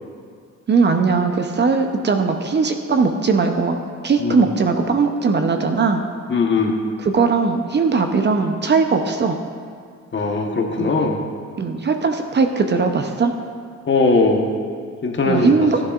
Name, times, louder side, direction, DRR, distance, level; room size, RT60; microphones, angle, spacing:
voice 1, 0.7-3.8 4.0-6.0 7.0-9.4 10.8-10.9 11.6-13.3 15.3-15.8, right 4 dB, 35° right, 5 dB, 0.7 m, -19 dB
voice 2, 6.3-6.7 10.1-11.2 13.9-14.5 15.0-15.5, left 3 dB, 40° left, 2 dB, 1.2 m, -19 dB
12.5 x 10.5 x 2.5 m, 2.1 s
cardioid pair, 90°, 30 cm